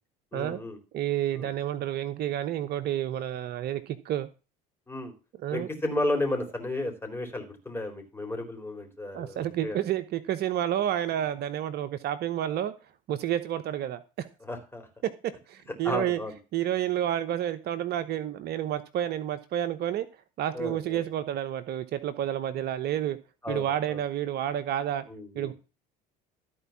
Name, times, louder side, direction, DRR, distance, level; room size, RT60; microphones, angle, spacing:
voice 1, 0.3-0.8 1.3-1.5 4.9-5.1 5.5-9.8 14.5-14.9 15.7-16.3 20.5-21.0 23.4-24.0 25.1-25.5, left 1 dB, 10° left, 4.1 m, -33 dB
voice 2, 0.9-4.3 5.4-5.7 9.1-12.7 13.1-14.3 15.5-16.2 16.5-20.1 20.4-23.2 23.5-25.0 25.3-25.5, right 11 dB, 50° right, 0.9 m, -30 dB
13.5 x 4.7 x 7.1 m
hypercardioid pair, 65°, 21 cm